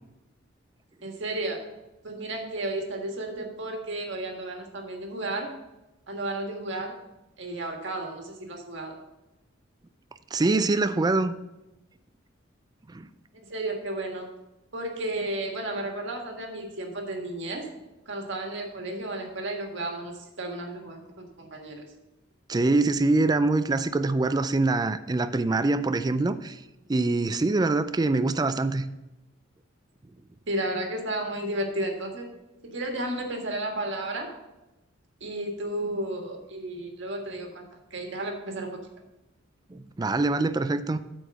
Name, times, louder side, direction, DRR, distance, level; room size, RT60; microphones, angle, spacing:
voice 1, 1.0-1.6 2.0-5.5 6.1-6.9 7.4-8.9 13.3-14.3 14.7-17.7 18.1-21.8 28.0-28.1 30.5-32.3 32.6-34.3 35.2-38.8, right 1 dB, 60° right, 2 dB, 1.6 m, -33 dB
voice 2, 10.3-11.3 12.9-13.1 22.5-26.6 26.9-28.8 39.7-41.0, right 3 dB, 20° right, 12 dB, 0.4 m, -24 dB
8.3 x 4.7 x 6.6 m, 0.97 s
head